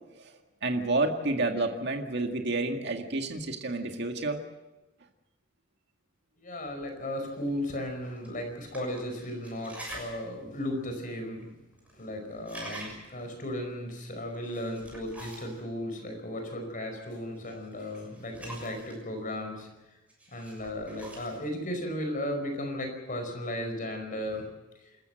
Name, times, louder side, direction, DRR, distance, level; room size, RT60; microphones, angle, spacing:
voice 1, 0.1-4.5, right 2 dB, 60° right, 4 dB, 2.0 m, -30 dB
voice 2, 6.4-11.5 11.9-19.7 20.3-24.4, left 1 dB, 45° left, 5 dB, 5.0 m, -35 dB
sound 1, 7.3-7.4 8.2-8.3 8.6-10.2 10.6-10.7 11.4-11.5 11.7-12.1 12.3-13.2 14.3-15.6 17.4-19.0 20.1-21.5, right 1 dB, 5° right, 6.7 m, -45 dB
27.5 x 14.5 x 7.8 m, 1.0 s
head